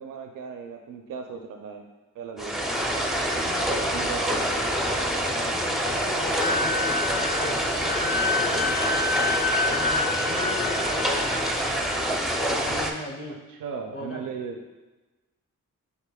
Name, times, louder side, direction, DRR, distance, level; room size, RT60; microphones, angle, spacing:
voice 1, 0.0-1.9 2.2-2.6 3.9-4.6 13.5-14.6, right 6 dB, 70° right, 4 dB, 0.5 m, -37 dB
sound 1, 2.4-12.9, equal, ahead, 0.5 m, -26 dB
voice 2, 2.8-4.2 5.0-8.8 9.6-11.4 12.3-13.4 13.9-14.2, left 2 dB, 40° left, 1 dB, 0.9 m, -38 dB
Wind instrument woodwind instrument, 6.4-11.5, left 4 dB, 75° left, 0.7 m, -28 dB
6.6 x 2.9 x 2.3 m, 1.2 s
cardioid pair, 55°, 34 cm